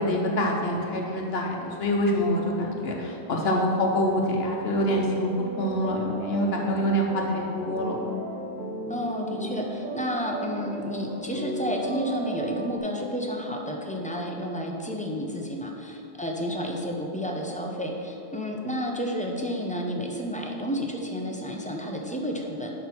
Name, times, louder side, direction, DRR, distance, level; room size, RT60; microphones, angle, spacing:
voice 1, 0.0-5.3 5.6-8.0, equal, 75° left, 0 dB, 1.2 m, -26 dB
sound 1, 4.7-12.8, right 2 dB, 55° right, 0.9 m, -35 dB
voice 2, 8.9-22.7, equal, 10° left, 0 dB, 0.8 m, -31 dB
10.5 x 3.7 x 6.0 m, 2.9 s
omnidirectional pair, 1.1 m